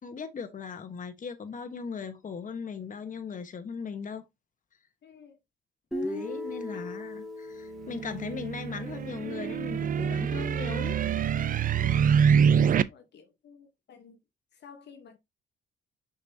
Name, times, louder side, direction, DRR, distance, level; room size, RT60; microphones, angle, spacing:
voice 1, 0.0-4.2 6.0-11.0, left 5 dB, 40° left, 1.3 m, -38 dB
voice 2, 5.0-5.4 6.7-6.9 11.8-14.2 14.5-15.2, left 6 dB, 60° left, 1.1 m, -52 dB
Guitar, 5.9-9.9, left 1 dB, ahead, 2.4 m, -38 dB
sound 1, 7.8-12.8, right 7 dB, 45° right, 0.5 m, -25 dB
6.7 x 5.3 x 2.8 m
cardioid pair, 90°, 20 cm